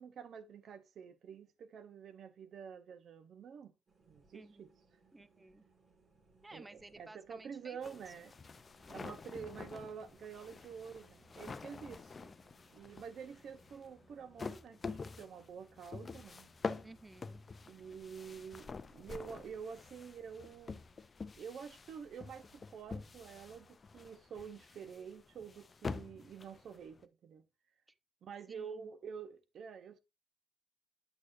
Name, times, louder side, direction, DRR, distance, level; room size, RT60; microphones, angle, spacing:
voice 1, 0.0-3.7 4.1-4.7 6.5-8.3 8.9-12.2 12.7-16.5 17.7-20.8 21.4-27.4 28.2-30.0, right 6 dB, 65° right, 0.7 m, -48 dB
sound 1, 3.9-14.6, right 4 dB, 45° right, 2.1 m, -70 dB
voice 2, 4.3-4.7 5.1-5.6 6.4-8.1 16.8-17.4 18.5-18.6 27.9-28.0 28.5-28.9, right 2 dB, 15° right, 0.5 m, -56 dB
sound 2, 7.8-27.0, left 4 dB, 35° left, 0.5 m, -47 dB
sound 3, 9.6-23.6, right 2 dB, 90° right, 5.3 m, -70 dB
7.9 x 6.4 x 2.5 m
cardioid pair, 90°, 0 cm